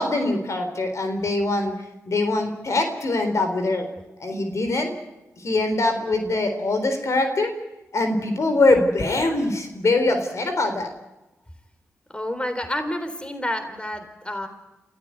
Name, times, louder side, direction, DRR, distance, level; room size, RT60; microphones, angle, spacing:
voice 1, 0.0-1.7 2.1-3.9 4.2-4.9 5.4-7.5 7.9-10.9, left 2 dB, 65° left, 6 dB, 4.0 m, -23 dB
voice 2, 12.1-14.5, left 1 dB, 20° left, 8 dB, 3.9 m, -29 dB
28.0 x 14.5 x 9.6 m, 1.0 s
cardioid pair, 45°, 6 cm